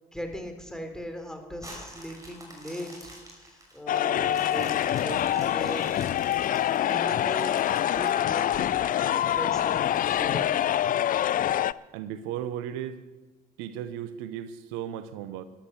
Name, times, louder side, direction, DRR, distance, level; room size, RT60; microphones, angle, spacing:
voice 1, 0.1-6.1 6.8-7.6 7.9-8.8 9.1-9.8 10.1-10.5, equal, 5° left, 5 dB, 3.6 m, -38 dB
sound 1, 1.6-8.9 9.4-9.5 9.9-11.2 11.8-11.9, right 1 dB, 15° right, 6.0 m, -48 dB
sound 2, 3.9-11.7, left 11 dB, 45° left, 0.4 m, -25 dB
voice 2, 11.9-13.0 13.6-15.4, right 10 dB, 75° right, 13 dB, 0.8 m, -35 dB
13.0 x 12.0 x 7.1 m, 1.2 s
hypercardioid pair, 55°, 20 cm